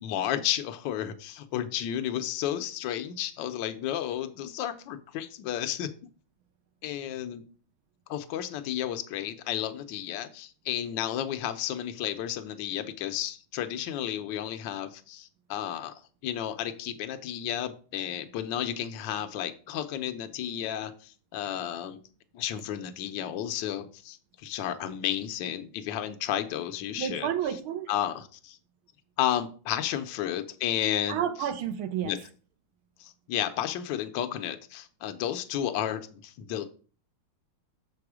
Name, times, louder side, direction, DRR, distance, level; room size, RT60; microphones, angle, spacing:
voice 1, 0.0-5.9 6.8-7.4 8.1-15.9 16.2-22.0 22.3-27.3 27.9-28.6 29.2-31.2 32.0-32.2 33.0-36.7, left 11 dB, 70° left, 1.3 m, -32 dB
voice 2, 27.0-27.9 31.1-32.2, right 9 dB, 80° right, 1.5 m, -30 dB
7.0 x 4.9 x 4.8 m
omnidirectional pair, 2.3 m